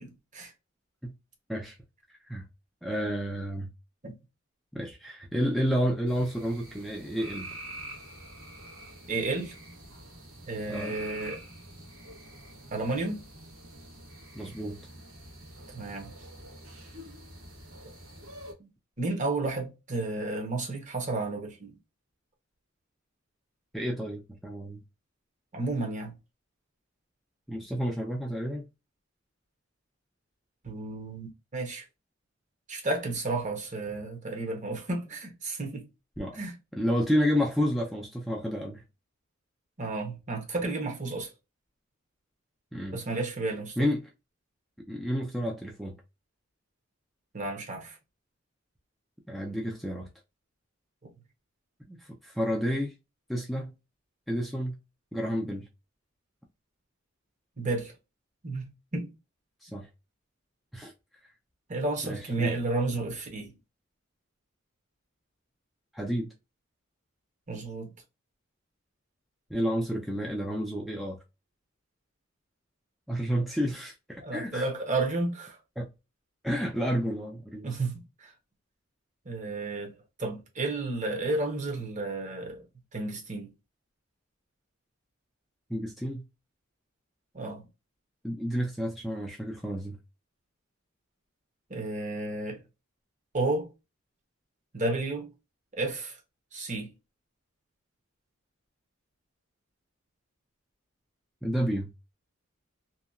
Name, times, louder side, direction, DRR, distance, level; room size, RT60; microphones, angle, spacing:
voice 1, 2.8-3.7 4.7-7.5 10.7-10.9 14.4-14.8 23.7-24.8 27.5-28.7 36.2-36.4 36.8-38.8 42.7-43.0 43.8-44.1 44.9-46.0 49.3-50.1 51.9-52.9 53.3-53.7 54.3-54.8 55.1-55.7 59.6-59.9 60.7-60.9 62.0-62.5 65.9-66.3 69.5-71.2 73.1-74.6 75.8-75.9 76.4-77.7 85.7-86.3 88.2-90.0 101.4-101.9, equal, ahead, 0.4 m, -30 dB
sound 1, 6.1-18.5, right 1 dB, 85° right, 1.1 m, -46 dB
voice 2, 9.1-9.5 10.5-11.4 12.7-13.2 15.7-16.1 18.6-18.7 19.0-21.8 25.5-26.1 30.6-31.8 32.7-35.8 36.3-36.5 39.8-41.3 42.9-43.8 47.3-48.0 57.6-57.9 58.4-59.1 61.7-63.5 67.5-67.9 74.2-75.6 77.6-78.3 79.2-82.6 82.9-83.5 87.3-87.6 91.7-92.6 93.3-93.7 94.7-95.3 95.7-96.2 96.5-96.9, right 2 dB, 40° right, 0.9 m, -32 dB
2.8 x 2.2 x 2.3 m
head